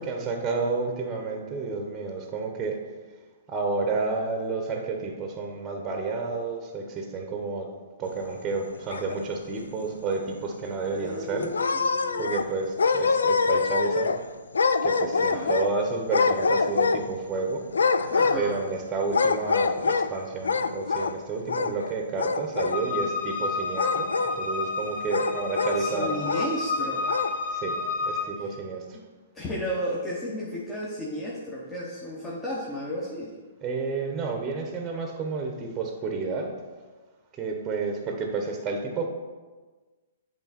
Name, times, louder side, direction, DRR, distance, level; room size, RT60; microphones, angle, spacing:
voice 1, 0.0-2.8 3.5-7.7 8.0-11.5 12.2-14.2 14.8-17.7 18.3-26.2 27.5-27.8 28.0-29.0 33.6-36.5 37.4-39.1, right 4 dB, 20° right, 3 dB, 0.9 m, -30 dB
sound 1, 8.5-9.5 9.9-10.0 10.4-10.5 11.4-12.5 12.8-14.2 14.5-15.7 16.1-17.2 17.7-18.7 19.1-20.1 20.4-21.1 21.4-21.9 22.2-22.8 23.8-24.4 25.1-25.8 26.2-26.5 27.0-27.3, left 4 dB, 80° left, 0.3 m, -25 dB
voice 2, 10.9-12.3 15.2-15.5 18.1-18.6 25.8-27.1 29.3-33.3, equal, 15° left, -6 dB, 1.1 m, -33 dB
sound 2, 22.7-28.3, left 3 dB, 60° left, 1.3 m, -30 dB
8.0 x 3.6 x 4.2 m, 1.3 s
hypercardioid pair, 125°, 0 cm